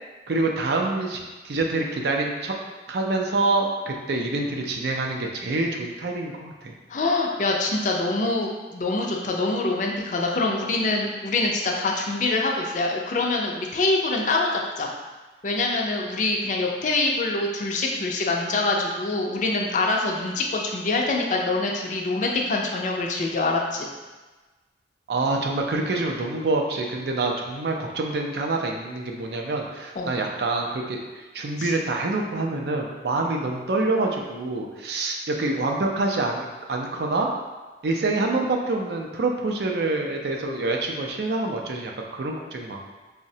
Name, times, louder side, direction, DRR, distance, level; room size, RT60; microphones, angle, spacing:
voice 1, 0.3-2.5 2.9-6.7 25.1-37.3 37.8-42.8, right 2 dB, 65° right, 1 dB, 0.4 m, -26 dB
voice 2, 6.9-14.9 15.4-23.9 30.0-30.1 31.6-31.7, left 2 dB, 45° left, 0 dB, 0.4 m, -25 dB
4.7 x 2.1 x 2.7 m, 1.2 s
head